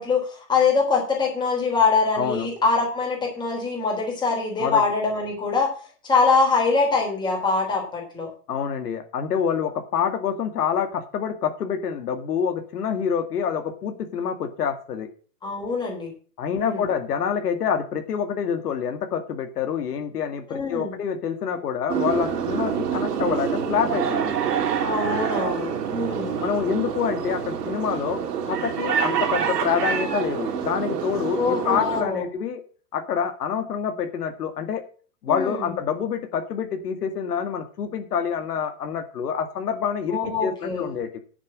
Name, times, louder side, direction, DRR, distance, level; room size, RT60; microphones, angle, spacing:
voice 1, 0.0-5.7 6.0-8.3 15.4-16.1 16.5-16.9 20.5-21.0 24.8-26.5 31.4-32.2 35.3-35.7 40.1-40.9, left 4 dB, 10° left, -1 dB, 3.6 m, -23 dB
voice 2, 2.1-2.5 4.6-4.8 8.5-15.1 16.4-24.3 26.4-28.2 28.5-32.6 32.9-34.8 35.2-41.2, left 7 dB, 80° left, 6 dB, 2.3 m, -27 dB
sound 1, 21.9-32.0, right 8 dB, 85° right, 3.5 m, -26 dB
10.0 x 7.5 x 6.3 m, 0.40 s
supercardioid pair, 170°, 47 cm